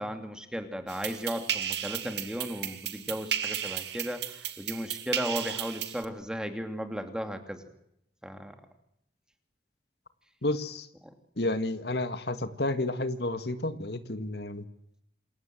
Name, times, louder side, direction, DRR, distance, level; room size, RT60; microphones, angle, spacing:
voice 1, 0.0-7.6 8.2-8.6, equal, 5° right, 7 dB, 2.7 m, -35 dB
sound 1, 0.9-6.1, right 9 dB, 80° right, 2.2 m, -34 dB
voice 2, 10.4-10.9 11.4-14.6, left 2 dB, 70° left, 10 dB, 1.9 m, -31 dB
28.0 x 22.5 x 7.7 m, 0.78 s
head